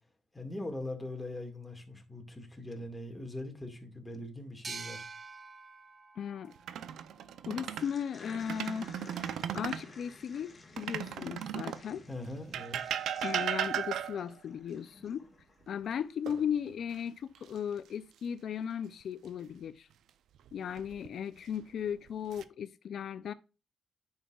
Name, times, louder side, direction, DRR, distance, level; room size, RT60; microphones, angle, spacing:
voice 1, 0.3-5.0 12.1-12.8, left 1 dB, 15° left, 1.8 m, -41 dB
sound 1, 4.6-8.0, right 4 dB, 35° right, 0.7 m, -47 dB
voice 2, 6.2-6.5 7.5-8.9 9.5-12.1 13.2-15.3 15.7-19.9 20.5-23.3, left 8 dB, 65° left, 0.4 m, -36 dB
sound 2, 6.5-7.9 8.3-9.9 10.8-11.9 12.5-14.3 16.3-16.9 17.3-17.6 20.5-21.1 21.8-22.4, right 9 dB, 80° right, 0.5 m, -36 dB
sound 3, 7.8-16.4, left 3 dB, 35° left, 1.6 m, -55 dB
9.3 x 5.6 x 2.3 m
cardioid pair, 95°, 0 cm